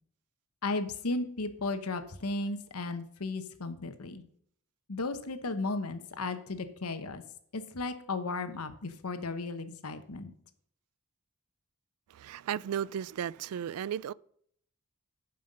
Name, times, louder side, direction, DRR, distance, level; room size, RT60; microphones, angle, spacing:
voice 1, 0.6-4.2 4.9-7.2 7.5-10.3, left 3 dB, 80° left, 1.0 m, -35 dB
voice 2, 12.1-14.1, right 9 dB, 80° right, 0.3 m, -35 dB
9.2 x 5.6 x 6.6 m
head